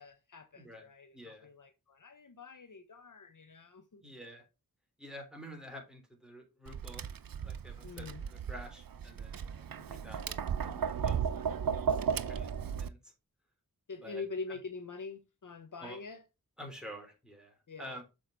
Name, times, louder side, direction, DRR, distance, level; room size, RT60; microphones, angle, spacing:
voice 1, 0.0-4.0 7.8-8.2 13.9-16.2 17.7-18.0, left 4 dB, 55° left, 0.9 m, -45 dB
voice 2, 0.6-0.9 1.1-1.5 4.0-4.5 5.0-7.0 7.4-10.4 10.6-11.3 11.6-13.1 14.0-14.6 15.8-16.0 16.6-18.0, equal, ahead, 3.6 m, -49 dB
Tap, 6.7-12.9, right 7 dB, 65° right, 0.6 m, -35 dB
7.0 x 4.7 x 4.4 m
cardioid pair, 50°, 36 cm